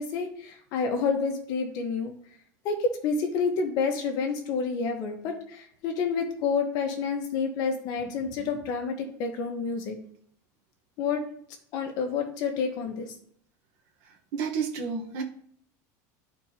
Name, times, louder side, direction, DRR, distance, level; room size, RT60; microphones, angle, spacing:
voice 1, 0.0-2.1 2.6-10.0 11.0-11.2 11.7-13.1, left 5 dB, 45° left, 4 dB, 1.4 m, -29 dB
voice 2, 14.3-15.2, right 6 dB, 60° right, 2 dB, 1.4 m, -30 dB
12.5 x 4.4 x 3.0 m, 0.62 s
cardioid pair, 160°, 9 cm